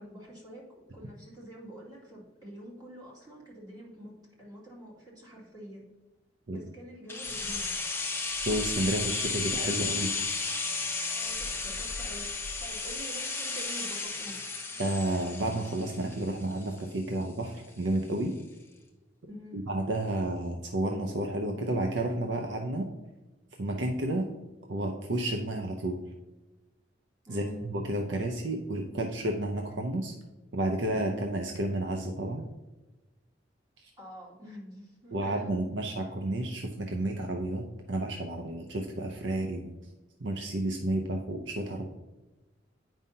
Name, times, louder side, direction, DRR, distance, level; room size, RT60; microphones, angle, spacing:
voice 1, 0.0-4.1 4.4-5.8 6.5-7.7 11.1-14.4 19.2-19.6 27.3-27.6 34.0-35.7, equal, 20° right, -6 dB, 2.4 m, -47 dB
sound 1, 7.1-16.9 17.2-17.3, left 4 dB, 15° left, 0.9 m, -33 dB
voice 2, 8.5-10.1 14.8-18.3 19.5-22.9 23.6-24.3 24.7-26.0 27.3-30.1 30.5-32.4 35.1-39.7 40.2-41.9, right 1 dB, 65° right, 2 dB, 0.7 m, -31 dB
8.9 x 5.4 x 2.7 m, 1.1 s
head